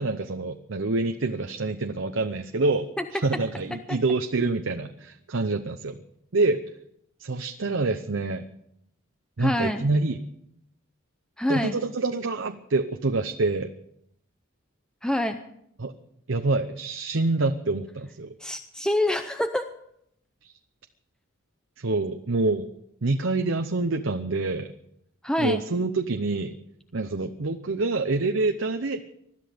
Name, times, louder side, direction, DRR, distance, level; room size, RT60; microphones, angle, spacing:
voice 1, 0.0-6.0 6.3-6.6 7.2-8.5 9.4-10.2 11.5-13.7 15.8-15.9 16.3-18.3 20.4-20.5 21.8-22.7 23.0-24.7 25.4-26.6 26.9-29.0, right 3 dB, 65° right, 6 dB, 0.8 m, -26 dB
voice 2, 9.4-9.9 11.4-11.8 15.0-15.4 18.4-19.7 25.2-25.6, left 1 dB, 5° left, 7 dB, 0.6 m, -26 dB
21.0 x 12.5 x 5.1 m, 0.75 s
head